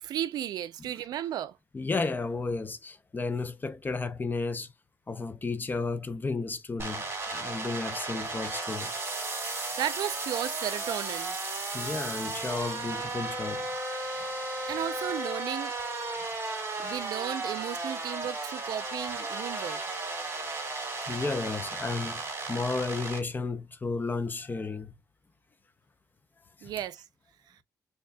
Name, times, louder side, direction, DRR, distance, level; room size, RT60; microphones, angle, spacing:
voice 1, 0.0-1.6 9.4-11.4 14.7-15.7 16.8-19.8 26.6-27.0, right 11 dB, 85° right, 0.4 m, -34 dB
voice 2, 1.7-4.7 5.1-8.9 11.7-13.7 14.6-14.8 16.8-16.9 21.1-24.9 26.6-26.8, left 3 dB, 30° left, 0.6 m, -33 dB
sound 1, 6.8-23.2, right 2 dB, 35° right, 2.1 m, -35 dB
4.1 x 3.6 x 2.2 m
cardioid pair, 90°, 7 cm